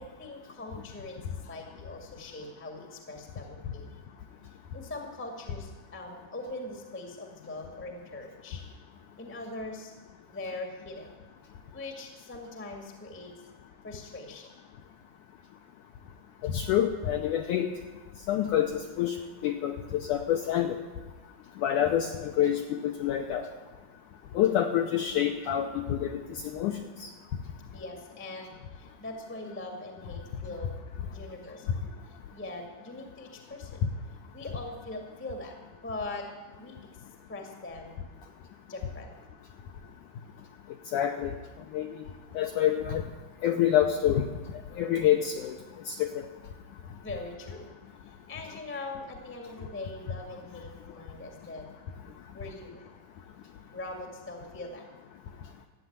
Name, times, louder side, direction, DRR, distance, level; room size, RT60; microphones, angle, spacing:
voice 1, 0.0-3.9 4.5-8.6 9.2-9.9 10.3-11.1 11.7-13.4 13.8-14.5 27.7-30.8 31.1-31.8 32.0-33.8 34.3-36.3 36.6-36.8 37.3-38.0 38.7-39.2 47.0-47.7 48.0-51.7 52.3-52.9 53.7-54.8, left 2 dB, 10° left, 2 dB, 0.6 m, -41 dB
voice 2, 16.4-17.7 18.3-19.2 19.4-20.8 21.6-23.4 24.3-27.1 40.9-41.3 41.7-42.0 42.4-43.0 43.4-44.2 44.8-45.6 45.9-46.3, left 10 dB, 80° left, 4 dB, 1.8 m, -27 dB
14.0 x 8.5 x 9.4 m, 1.3 s
omnidirectional pair, 4.5 m